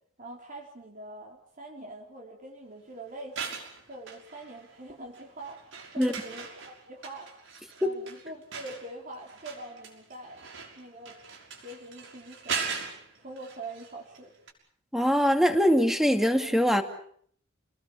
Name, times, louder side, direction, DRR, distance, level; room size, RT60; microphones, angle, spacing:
voice 1, 0.2-3.6 3.9-7.3 7.8-10.4 10.8-11.2 11.6-12.7 13.2-14.3, right 2 dB, 45° right, -1 dB, 4.2 m, -44 dB
sound 1, 3.2-4.8 5.1-14.2 14.5-14.6, right 5 dB, 75° right, 6.2 m, -40 dB
voice 2, 14.9-16.8, equal, ahead, 6 dB, 2.4 m, -22 dB
30.0 x 20.5 x 7.2 m, 0.62 s
head